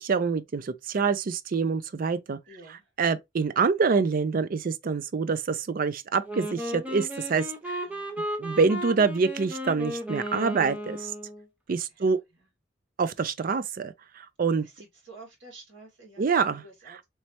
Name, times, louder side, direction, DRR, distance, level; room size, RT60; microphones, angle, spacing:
voice 1, 0.0-2.4 3.0-7.8 8.4-11.1 11.7-12.2 13.0-14.7 16.2-17.0, right 5 dB, 45° right, 0.4 m, -26 dB
voice 2, 2.5-2.9 7.9-8.2 12.0-12.1 12.4-12.5 14.6-16.3 16.5-17.0, right 3 dB, 75° right, 2.0 m, -50 dB
Wind instrument woodwind instrument, 6.2-11.4, equal, 5° right, 0.7 m, -35 dB
3.1 x 3.1 x 2.8 m
head